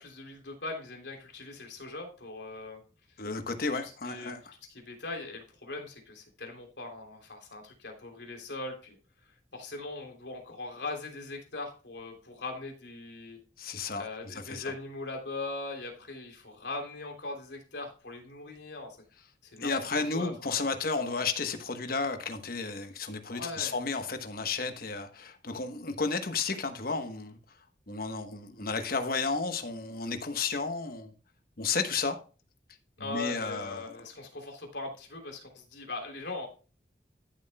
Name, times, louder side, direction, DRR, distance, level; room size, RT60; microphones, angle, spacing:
voice 1, 0.0-2.8 3.2-3.3 3.7-4.3 4.7-9.0 9.5-13.4 13.9-19.0 19.4-19.9 20.1-20.7 21.0-21.2 23.3-23.8 33.0-36.5, left 2 dB, 70° left, 3.2 m, -40 dB
voice 2, 3.2-4.4 13.6-14.7 19.6-27.4 27.9-31.1 31.6-32.2 33.0-34.1, left 4 dB, 50° left, 1.1 m, -33 dB
13.0 x 7.5 x 2.2 m
head